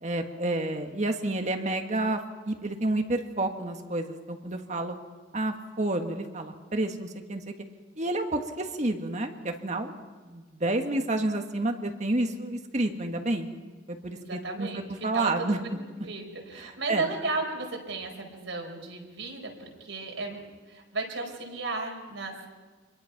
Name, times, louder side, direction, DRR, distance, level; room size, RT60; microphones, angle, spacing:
voice 1, 0.0-2.2 2.4-4.9 5.3-7.5 8.0-10.0 10.3-13.5 13.9-15.6 16.5-17.1, right 2 dB, 40° right, 5 dB, 1.6 m, -30 dB
voice 2, 14.1-15.5 16.0-20.4 20.7-22.5, right 3 dB, 80° right, 1 dB, 4.8 m, -34 dB
26.5 x 22.0 x 5.9 m, 1.4 s
head